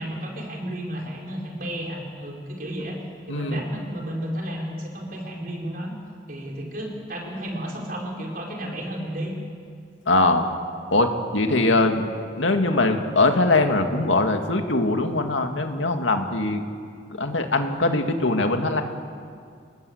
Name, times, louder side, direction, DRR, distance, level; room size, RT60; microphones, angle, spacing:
voice 1, 0.0-3.0 3.3-5.9 6.3-9.4, equal, 50° right, -1 dB, 5.0 m, -32 dB
voice 2, 3.3-3.6 10.1-10.4 10.9-12.1 12.4-16.6 17.2-18.8, left 2 dB, 90° left, 5 dB, 2.3 m, -21 dB
29.5 x 20.0 x 8.1 m, 2.2 s
head